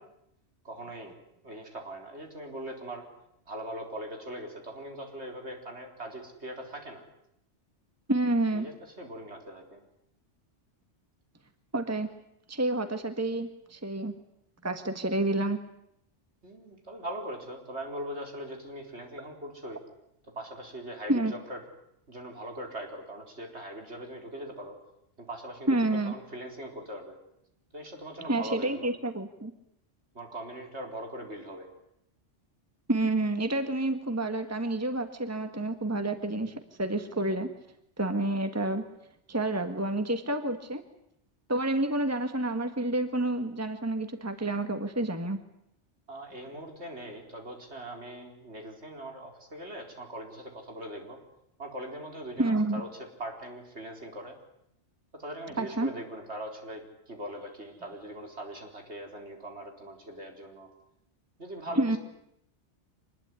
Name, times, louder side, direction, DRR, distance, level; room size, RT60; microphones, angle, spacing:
voice 1, 0.6-1.2 1.4-3.1 3.5-7.0 8.5-9.8 16.4-19.8 20.3-21.6 22.1-24.8 25.2-25.8 26.1-27.2 27.7-28.9 30.1-31.7 46.1-51.2 51.6-54.3 55.1-60.7 61.4-62.0, right 1 dB, 65° right, 3 dB, 4.7 m, -41 dB
voice 2, 8.1-8.7 11.7-12.1 12.5-14.1 14.6-15.6 21.1-21.3 25.7-26.1 28.3-29.5 32.9-37.5 38.0-38.8 39.3-40.8 41.5-45.4 52.4-52.8 55.6-55.9 61.7-62.0, right 2 dB, 15° right, 8 dB, 1.5 m, -29 dB
25.0 x 20.5 x 9.8 m, 0.77 s
omnidirectional pair, 1.2 m